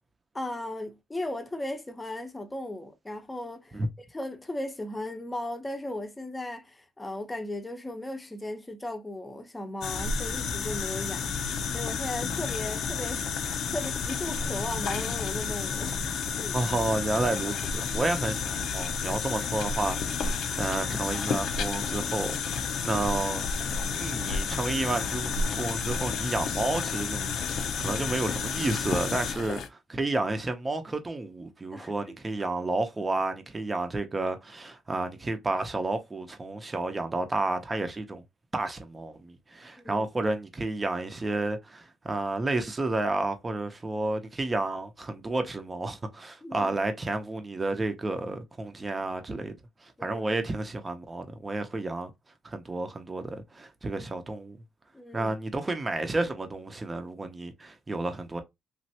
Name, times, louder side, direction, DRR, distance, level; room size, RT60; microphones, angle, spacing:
voice 1, 0.3-3.8 4.1-16.6 27.8-28.1 31.7-32.1 39.8-40.1 46.4-46.7 50.0-50.2 54.9-55.3, left 1 dB, 15° left, 0.7 m, -37 dB
sound 1, 9.8-29.7, left 5 dB, 75° left, 0.5 m, -31 dB
voice 2, 16.5-22.3 22.8-23.4 23.9-38.2 38.5-49.5 49.8-52.1 52.4-54.6 55.1-58.4, right 2 dB, 25° right, 0.7 m, -31 dB
3.1 x 2.5 x 2.8 m
cardioid pair, 90°, 0 cm